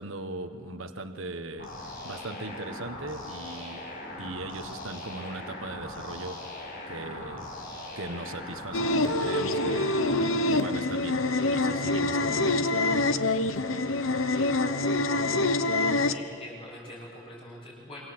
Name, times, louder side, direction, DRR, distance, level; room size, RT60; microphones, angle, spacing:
voice 1, 0.0-3.8 4.2-6.5 6.9-7.5 8.0-13.1, right 2 dB, 80° right, 8 dB, 1.5 m, -39 dB
sound 1, 1.6-10.2, left 2 dB, 45° left, 6.3 m, -40 dB
sound 2, 8.7-16.1, left 2 dB, 75° left, 1.0 m, -26 dB
voice 2, 16.1-18.0, left 1 dB, 25° left, -9 dB, 7.2 m, -44 dB
26.0 x 25.0 x 8.1 m, 2.4 s
head